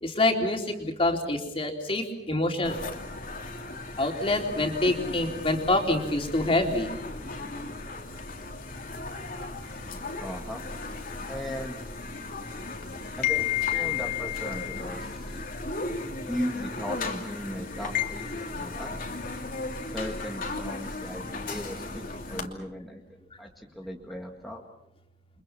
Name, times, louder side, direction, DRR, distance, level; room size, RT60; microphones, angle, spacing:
voice 1, 0.0-2.8 4.0-6.9 12.3-12.4, left 2 dB, 30° left, 2 dB, 3.7 m, -26 dB
sound 1, 2.6-22.5, left 5 dB, 50° left, 2.8 m, -34 dB
voice 2, 10.2-10.6 11.3-11.8 13.2-15.2 16.3-19.0 19.9-23.0 23.4-24.6, equal, ahead, 0 dB, 1.9 m, -37 dB
29.5 x 24.5 x 5.9 m, 0.81 s
head